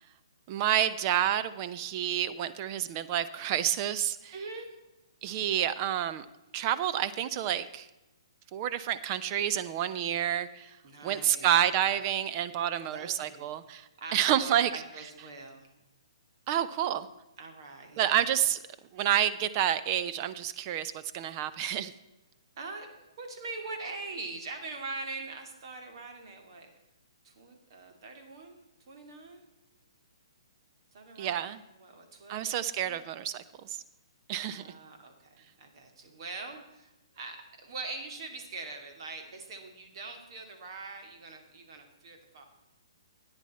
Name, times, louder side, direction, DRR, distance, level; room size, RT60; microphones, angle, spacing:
voice 1, 0.5-4.3 5.2-6.2 6.5-7.9 8.5-10.7 11.0-14.7 16.5-17.1 18.0-18.6 18.9-21.9 31.2-31.6 32.3-33.8 34.3-34.6, right 10 dB, 35° right, 13 dB, 0.7 m, -29 dB
voice 2, 4.3-4.8 10.8-11.6 12.8-13.5 14.0-15.7 17.4-18.3 22.6-26.7 27.2-28.6 28.9-29.4 30.9-33.0 34.5-42.4, right 3 dB, 55° right, 4 dB, 2.5 m, -43 dB
13.0 x 9.8 x 4.3 m, 1.0 s
hypercardioid pair, 145°, 3 cm